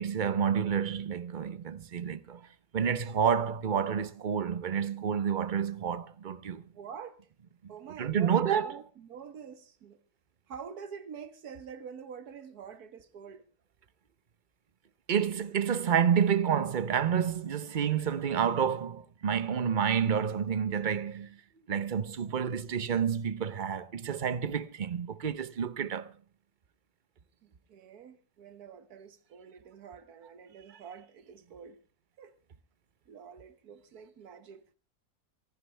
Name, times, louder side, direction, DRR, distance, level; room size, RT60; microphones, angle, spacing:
voice 1, 0.0-2.5 2.7-6.6 7.6-7.7 8.0-8.7 15.1-21.4 21.7-26.1, right 7 dB, 40° right, 0.8 m, -29 dB
voice 2, 6.7-7.3 7.7-10.0 10.5-13.5 27.4-31.8 32.2-32.3 33.1-34.6, right 7 dB, 85° right, 1.7 m, -47 dB
24.5 x 12.0 x 3.3 m
omnidirectional pair, 1.6 m